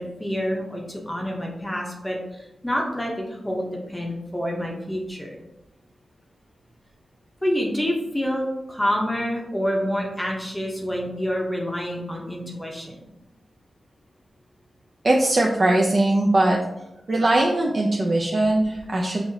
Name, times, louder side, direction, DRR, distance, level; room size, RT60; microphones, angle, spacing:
voice 1, 0.0-5.4 7.4-13.1, equal, 10° left, -1 dB, 0.7 m, -27 dB
voice 2, 15.0-16.6 17.1-19.2, right 1 dB, 45° right, -1 dB, 0.5 m, -20 dB
5.4 x 2.9 x 2.7 m, 0.91 s
wide cardioid pair, 90°, 0 cm